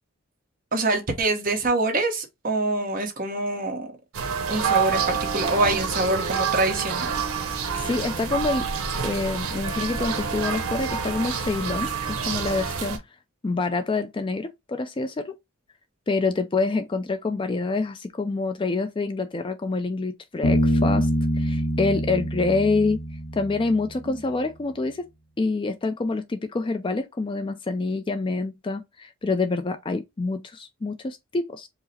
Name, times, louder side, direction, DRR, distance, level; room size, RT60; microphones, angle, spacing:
voice 1, 0.7-3.9 4.5-7.2 24.1-24.2, right 2 dB, 40° right, 1.0 m, -25 dB
sound 1, 4.1-13.0, right 6 dB, 80° right, 0.9 m, -27 dB
voice 2, 7.5-8.7 9.0-13.0 13.4-15.3 16.1-23.0 23.3-25.1 25.4-31.7, left 3 dB, 25° left, 0.3 m, -27 dB
Bass guitar, 20.4-23.9, equal, 65° left, 0.7 m, -25 dB
4.7 x 2.0 x 4.0 m
head